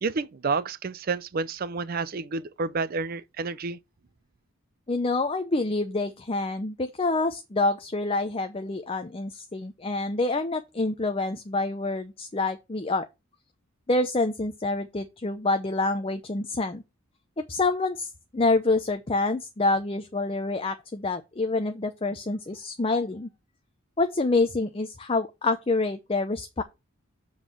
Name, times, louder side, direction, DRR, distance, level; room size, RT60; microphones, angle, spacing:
voice 1, 0.0-3.8, right 4 dB, 45° right, 0.5 m, -30 dB
voice 2, 4.9-13.1 13.9-16.8 17.5-23.3 24.0-26.6, left 3 dB, 25° left, 0.5 m, -27 dB
7.1 x 3.9 x 6.0 m
head